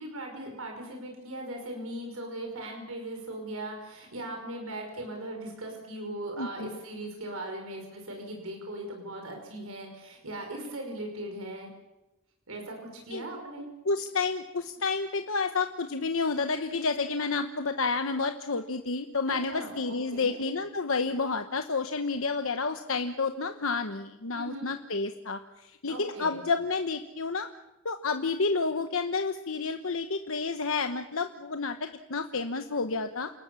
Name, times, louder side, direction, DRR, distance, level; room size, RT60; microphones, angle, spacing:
voice 1, 0.0-11.7 12.5-13.7 19.3-20.4 24.3-24.7 25.9-26.4, right 1 dB, 85° right, 2 dB, 5.4 m, -39 dB
voice 2, 6.4-6.8 13.1-13.2 13.8-27.5 27.8-33.3, left 4 dB, 75° left, 7 dB, 1.1 m, -30 dB
29.0 x 20.0 x 7.1 m, 0.98 s
head